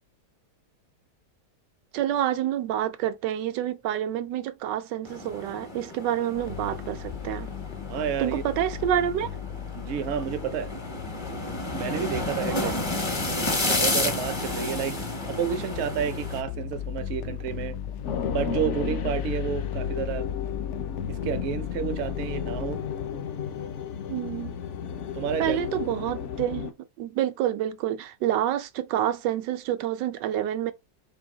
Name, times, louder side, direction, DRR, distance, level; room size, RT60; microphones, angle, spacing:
voice 1, 1.9-7.5 8.2-9.3 12.5-12.8 24.1-24.6 25.4-26.7 27.0-30.7, right 11 dB, 80° right, 1.2 m, -28 dB
sound 1, 5.1-16.4, left 2 dB, 30° left, 0.5 m, -32 dB
sound 2, 6.3-23.2, left 9 dB, 80° left, 1.2 m, -36 dB
voice 2, 7.9-8.4 9.7-10.7 11.7-12.7 13.1-15.0 15.3-17.8 18.3-20.3 21.1-22.8 25.1-25.6, right 8 dB, 65° right, 0.7 m, -30 dB
sound 3, 18.0-26.7, left 7 dB, 65° left, 0.7 m, -34 dB
4.4 x 2.6 x 3.8 m
omnidirectional pair, 1.8 m